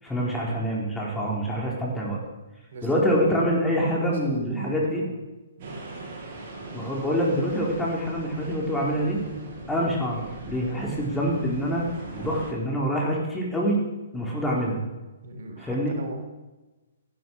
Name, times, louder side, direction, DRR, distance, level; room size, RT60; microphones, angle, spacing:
voice 1, 0.0-2.2 2.8-5.0 6.7-9.2 9.7-11.9 12.1-13.8 14.1-14.8 15.6-15.9, equal, 5° left, -3 dB, 4.5 m, -26 dB
voice 2, 2.7-5.1 5.6-5.8 15.2-16.2, right 2 dB, 60° right, 4 dB, 3.5 m, -37 dB
sound 1, 5.6-12.5, right 3 dB, 45° right, 6.2 m, -40 dB
14.0 x 11.5 x 6.6 m, 1.1 s
hypercardioid pair, 130°, 0 cm